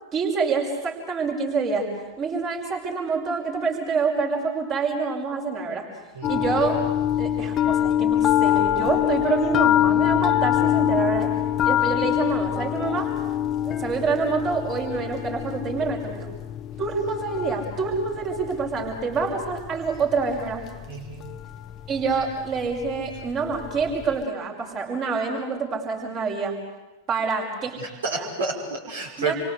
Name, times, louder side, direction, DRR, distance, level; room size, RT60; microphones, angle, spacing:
voice 1, 0.1-1.9 2.2-5.9 6.3-6.8 7.2-11.3 11.6-13.1 13.6-16.3 16.8-20.7 21.9-26.6 27.1-27.8 28.1-28.3 29.2-29.3, right 4 dB, 30° right, 0 dB, 5.8 m, -27 dB
sound 1, 6.2-24.2, left 11 dB, 30° left, 1.0 m, -25 dB
voice 2, 20.9-21.2 27.8-29.3, right 4 dB, 65° right, -2 dB, 5.8 m, -30 dB
28.5 x 24.5 x 8.2 m, 1.1 s
figure-of-eight pair, 90°, 0 cm